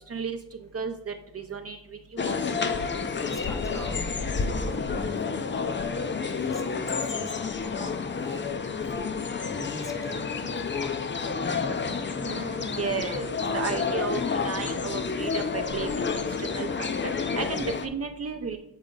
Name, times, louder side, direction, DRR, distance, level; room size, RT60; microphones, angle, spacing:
voice 1, 0.1-2.4 12.2-18.6, right 5 dB, 40° right, 5 dB, 0.6 m, -34 dB
sound 1, 2.2-17.9, left 5 dB, 30° left, 0.5 m, -30 dB
voice 2, 3.2-6.1 6.3-8.5 8.9-11.1, equal, 10° left, 4 dB, 0.9 m, -42 dB
7.3 x 4.2 x 3.8 m, 0.78 s
cardioid pair, 90°, 37 cm